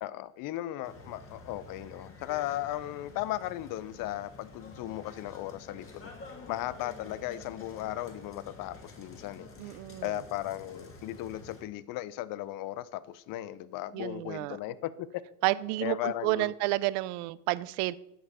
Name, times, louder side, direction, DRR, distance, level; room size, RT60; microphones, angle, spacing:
voice 1, 0.0-6.1 6.5-15.2 15.8-16.5, left 14 dB, 45° left, 0.5 m, -36 dB
sound 1, 0.8-11.6, left 3 dB, 25° left, 1.7 m, -49 dB
voice 2, 9.6-10.1 13.9-14.6 15.4-18.0, right 18 dB, 55° right, 0.5 m, -30 dB
8.0 x 6.4 x 4.8 m
hypercardioid pair, 85°, 47 cm